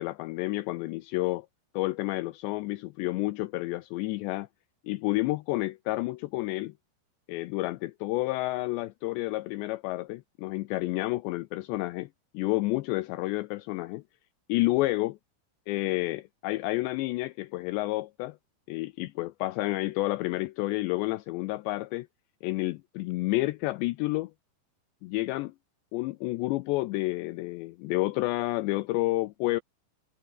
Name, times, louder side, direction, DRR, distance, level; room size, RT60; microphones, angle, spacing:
voice 1, 0.0-1.5 1.7-4.5 4.8-6.7 7.3-12.1 12.3-14.0 14.5-15.2 15.7-18.4 18.7-22.1 22.4-24.3 25.0-25.5 25.9-29.6, left 19 dB, 80° left, 2.7 m, -30 dB
omnidirectional pair, 5.4 m